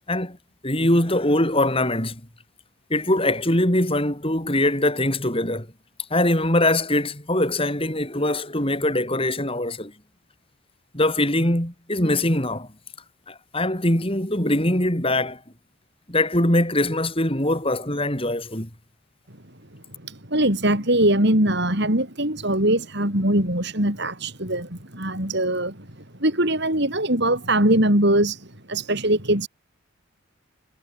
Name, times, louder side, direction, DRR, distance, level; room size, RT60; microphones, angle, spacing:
voice 1, 0.6-2.2 2.9-5.7 6.1-9.9 10.9-12.7 13.3-15.4 16.1-18.7, left 1 dB, 25° left, 5.1 m, -22 dB
voice 2, 20.0-25.8 26.2-29.5, right 1 dB, 50° right, 6.1 m, -22 dB
head